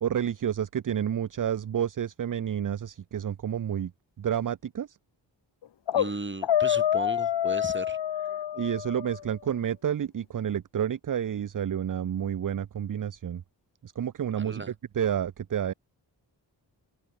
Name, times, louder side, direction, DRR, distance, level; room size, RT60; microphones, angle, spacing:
voice 1, 0.0-3.9 4.2-5.0 8.5-13.4 13.8-14.6 14.9-15.7, right 9 dB, 45° right, 0.6 m, -30 dB
sound 1, 5.6-6.1 6.4-9.2, left 10 dB, 65° left, 0.8 m, -27 dB
voice 2, 5.9-8.0 14.3-14.7, right 2 dB, 25° right, 2.7 m, -36 dB
open air
cardioid pair, 45°, 46 cm